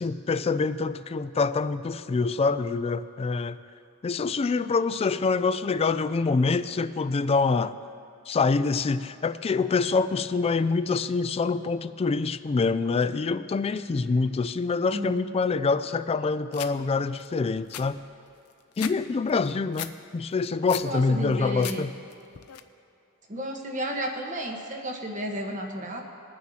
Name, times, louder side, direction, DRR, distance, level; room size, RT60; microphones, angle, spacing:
voice 1, 0.0-3.6 4.0-7.7 8.3-18.0 18.8-21.9, left 4 dB, 25° left, 13 dB, 0.3 m, -25 dB
sound 1, 16.5-16.7 17.2-17.3 17.5-19.0 19.3-19.9 20.3-20.9 21.3-21.8 22.1-22.6, left 11 dB, 80° left, 0.6 m, -37 dB
voice 2, 20.8-21.8 23.3-26.0, equal, 35° right, 1 dB, 1.3 m, -32 dB
21.5 x 9.5 x 2.8 m, 2.8 s
head